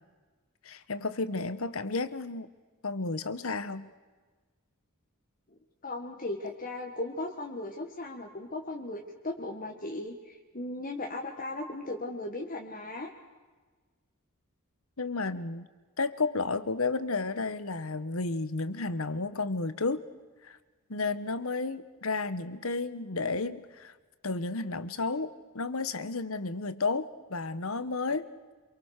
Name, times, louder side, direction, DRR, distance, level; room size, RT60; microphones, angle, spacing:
voice 1, 0.6-2.5 2.8-3.9 15.0-15.7 16.0-20.0 20.4-20.6 20.9-23.9 24.2-28.3, left 3 dB, 75° left, 13 dB, 1.4 m, -32 dB
voice 2, 5.5-13.1, left 2 dB, 40° left, 1 dB, 1.9 m, -37 dB
27.5 x 23.0 x 6.7 m, 1.3 s
head